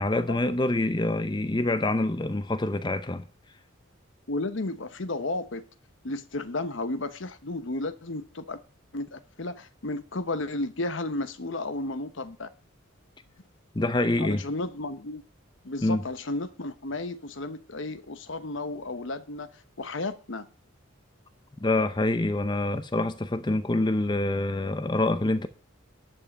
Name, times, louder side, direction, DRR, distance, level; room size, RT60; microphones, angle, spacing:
voice 1, 0.0-3.2 13.7-14.4 15.8-16.0 21.6-25.5, left 2 dB, 20° left, 0.6 m, -26 dB
voice 2, 4.3-5.6 6.0-8.6 8.9-12.5 14.2-15.2 15.6-19.5 19.8-20.4, left 2 dB, 65° left, 1.0 m, -33 dB
11.0 x 5.5 x 8.8 m
head